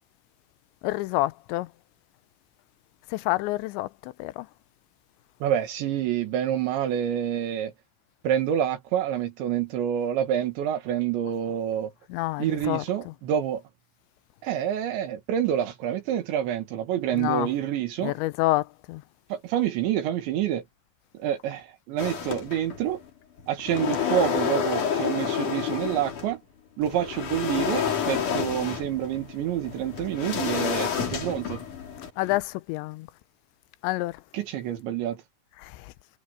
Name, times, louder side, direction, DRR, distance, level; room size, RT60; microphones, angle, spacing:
voice 1, 0.8-1.7 3.1-4.5 12.1-12.8 17.1-17.5 18.0-19.0 32.2-33.1 33.8-34.2 35.6-35.7, left 18 dB, 85° left, 3.0 m, -28 dB
voice 2, 5.4-7.7 8.2-11.9 12.4-13.6 14.4-18.1 19.3-20.6 21.2-23.0 23.5-26.4 26.8-31.6 34.3-35.2, right 10 dB, 85° right, 4.3 m, -27 dB
sound 1, 22.0-23.0 23.4-26.3 26.8-32.4, left 7 dB, 50° left, 4.0 m, -29 dB
omnidirectional pair, 5.1 m